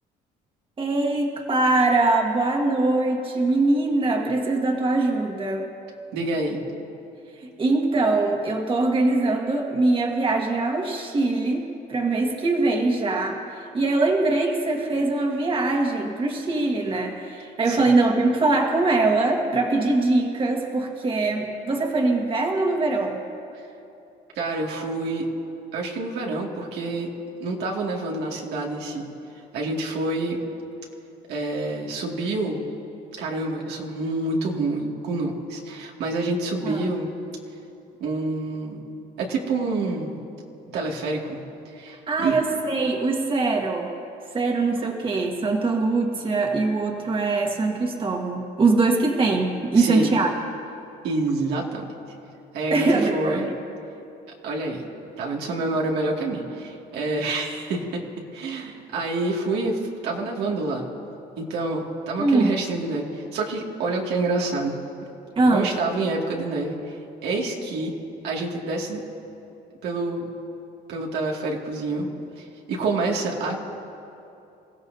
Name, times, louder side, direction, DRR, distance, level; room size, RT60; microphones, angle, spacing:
voice 1, 0.8-5.6 7.6-23.2 36.6-36.8 42.1-43.9 44.3-50.3 52.7-53.5 62.2-62.5 65.4-65.7, right 3 dB, 30° right, 1 dB, 1.7 m, -22 dB
voice 2, 6.1-6.6 17.7-17.9 24.4-25.3 25.7-27.1 27.4-29.1 29.5-30.4 31.3-32.6 33.2-37.1 38.0-38.8 39.2-40.2 40.7-41.4 41.7-42.4 49.7-50.1 51.0-51.8 52.5-52.9 53.1-53.5 54.4-54.8 55.2-57.8 58.3-60.9 61.4-64.8 65.5-67.0 67.2-67.9 68.2-69.0 69.8-70.3 70.9-72.1 72.4-73.6, right 2 dB, 80° right, -1 dB, 2.2 m, -27 dB
28.0 x 15.5 x 2.7 m, 2.8 s
cardioid pair, 110°, 17 cm